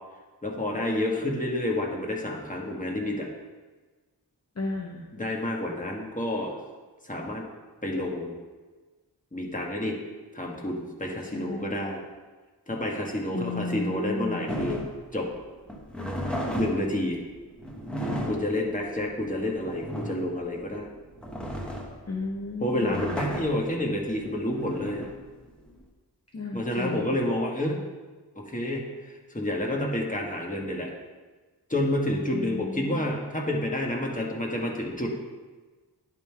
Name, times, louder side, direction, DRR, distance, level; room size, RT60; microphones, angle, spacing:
voice 1, 0.4-3.3 5.1-6.5 7.0-7.4 7.8-8.4 9.3-10.0 10.3-12.0 12.7-14.8 15.1-15.3 16.5-17.2 18.3-20.9 22.6-25.1 26.5-27.8 28.3-30.9 31.7-35.2, left 1 dB, 20° left, -1 dB, 1.6 m, -29 dB
voice 2, 4.6-5.1 11.3-11.9 13.3-14.5 22.1-23.2 26.3-27.2 32.3-33.1, left 3 dB, 40° left, 0 dB, 0.9 m, -34 dB
Dragging Kitchen Chairs, 14.5-25.8, equal, ahead, 1.2 m, -35 dB
10.5 x 3.7 x 4.7 m, 1.3 s
wide cardioid pair, 50°, 41 cm